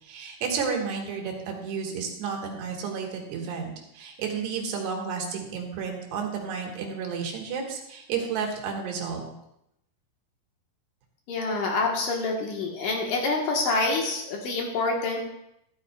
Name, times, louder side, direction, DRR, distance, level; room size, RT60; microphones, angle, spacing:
voice 1, 0.0-9.4, right 6 dB, 80° right, 1 dB, 3.6 m, -32 dB
voice 2, 11.3-15.2, left 3 dB, 65° left, 0 dB, 2.5 m, -27 dB
13.5 x 12.5 x 2.3 m, 0.80 s
omnidirectional pair, 4.7 m